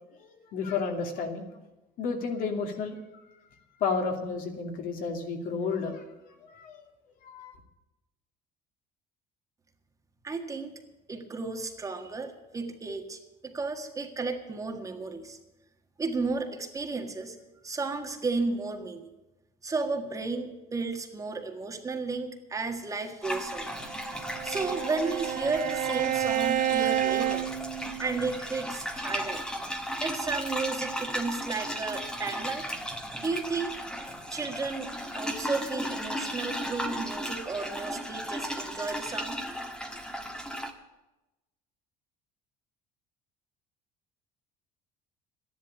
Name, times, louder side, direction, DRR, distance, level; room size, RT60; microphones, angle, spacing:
voice 1, 0.2-1.5 2.0-3.0 3.8-6.0 6.5-6.8 7.2-7.5, left 5 dB, 60° left, 4 dB, 2.6 m, -31 dB
voice 2, 10.2-10.8 11.1-15.4 16.0-17.4 17.6-19.1 19.6-27.5 28.0-29.4 30.0-32.7 33.2-33.7 34.3-39.4, right 3 dB, 20° right, 4 dB, 1.7 m, -33 dB
sound 1, 23.2-40.7, equal, 5° left, 1.4 m, -36 dB
Bowed string instrument, 23.9-28.3, right 10 dB, 55° right, 1.3 m, -30 dB
12.5 x 11.0 x 8.7 m, 1.0 s
cardioid pair, 140°, 16 cm